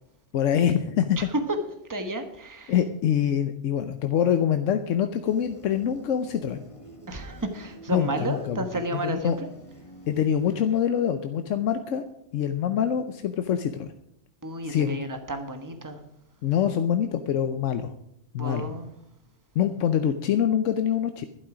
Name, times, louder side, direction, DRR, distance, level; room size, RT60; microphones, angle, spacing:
voice 1, 0.3-1.3 2.7-6.7 7.9-8.7 8.9-9.4 10.1-12.0 12.3-13.9 14.6-15.0 16.4-17.9 18.3-18.7 19.5-21.3, left 9 dB, 90° left, 8 dB, 1.1 m, -25 dB
voice 2, 1.2-1.6 1.9-2.7 7.1-9.4 14.4-16.0 18.4-18.9, right 2 dB, 15° right, 7 dB, 1.2 m, -31 dB
sound 1, 5.2-10.8, equal, 25° left, 1.4 m, -49 dB
12.0 x 11.5 x 5.0 m, 0.77 s
omnidirectional pair, 1.3 m